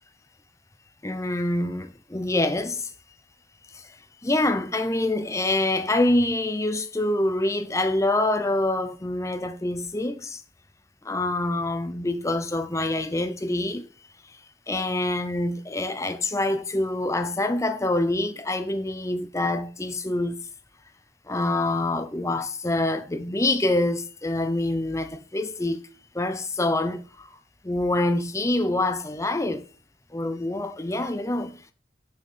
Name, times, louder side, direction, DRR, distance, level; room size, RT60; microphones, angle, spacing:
voice 1, 1.0-2.9 3.7-3.9 4.2-10.4 11.0-13.9 14.7-20.4 21.3-25.8 26.1-27.3 27.6-29.6 30.1-31.6, left 2 dB, 15° left, 0.7 m, -26 dB
6.5 x 6.1 x 5.6 m
head